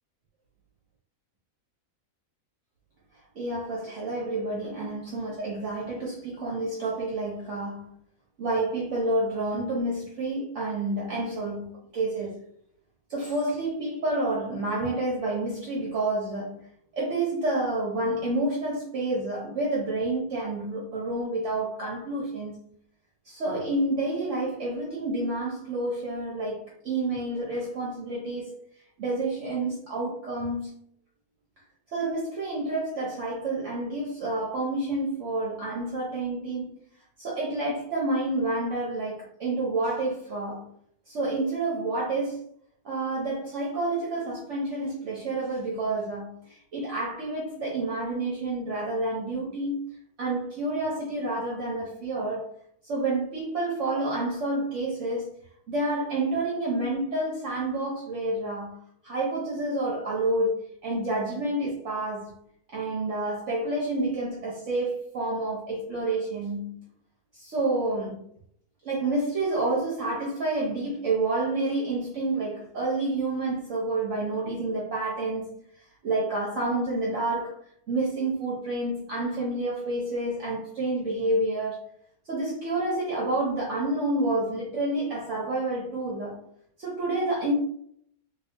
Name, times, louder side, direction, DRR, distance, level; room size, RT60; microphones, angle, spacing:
voice 1, 3.3-7.9 8.4-12.4 13.1-16.6 16.9-22.5 23.2-28.5 29.0-30.7 31.9-36.7 37.2-40.7 41.1-42.4 42.8-49.8 50.2-52.4 52.8-55.3 55.7-62.3 62.7-66.8 67.3-68.2 68.8-75.5 76.0-77.5 77.9-81.8 82.3-86.4 86.8-87.5, right 2 dB, 60° right, 1.0 m, -29 dB
3.0 x 2.7 x 3.3 m
omnidirectional pair, 1.6 m